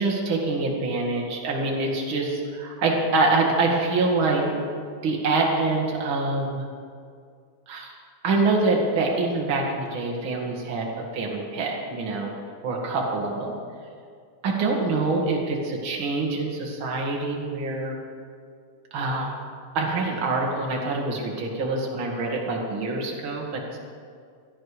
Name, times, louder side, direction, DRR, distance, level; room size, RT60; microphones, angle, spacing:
voice 1, 0.0-6.7 7.7-7.9 8.2-12.3 12.6-13.6 14.4-18.0 18.9-19.3 19.7-23.8, right 3 dB, 45° right, -1 dB, 2.5 m, -25 dB
16.0 x 12.0 x 4.9 m, 2.2 s
omnidirectional pair, 3.7 m